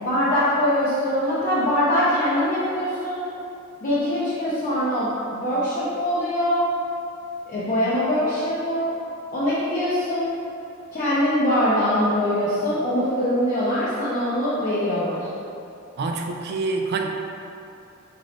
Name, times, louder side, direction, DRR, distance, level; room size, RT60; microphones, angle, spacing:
voice 1, 0.0-3.2 3.8-6.6 7.5-8.9 9.3-10.3 10.9-15.3, equal, 40° left, -11 dB, 0.6 m, -23 dB
voice 2, 16.0-17.1, right 3 dB, 50° right, 2 dB, 0.3 m, -26 dB
3.8 x 2.6 x 3.2 m, 2.7 s
head